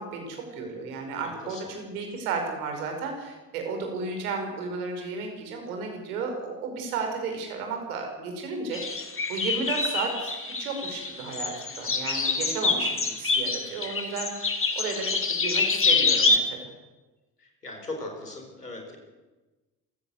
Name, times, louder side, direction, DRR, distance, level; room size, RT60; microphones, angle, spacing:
voice 1, 0.0-16.6, right 4 dB, 70° right, 3 dB, 5.4 m, -33 dB
voice 2, 1.2-1.7 17.4-19.0, left 2 dB, 90° left, 2 dB, 4.1 m, -39 dB
sound 1, 8.7-16.4, left 4 dB, 25° left, 3.3 m, -26 dB
27.0 x 15.5 x 8.0 m, 1.2 s
figure-of-eight pair, 50°, 45 cm